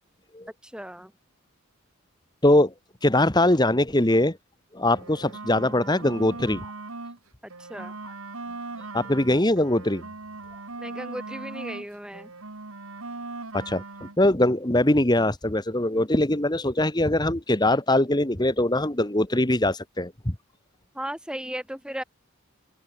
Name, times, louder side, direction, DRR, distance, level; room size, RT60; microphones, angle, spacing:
voice 1, 0.6-1.1 7.4-7.9 10.8-12.3 20.9-22.0, equal, 5° right, 5.3 m, -36 dB
voice 2, 2.4-2.7 3.0-4.4 4.7-6.7 8.9-10.0 13.5-20.3, left 1 dB, 20° left, 1.6 m, -22 dB
sound 1, 4.8-7.2 7.5-11.9 12.1-14.2, right 3 dB, 80° right, 2.5 m, -39 dB
open air
head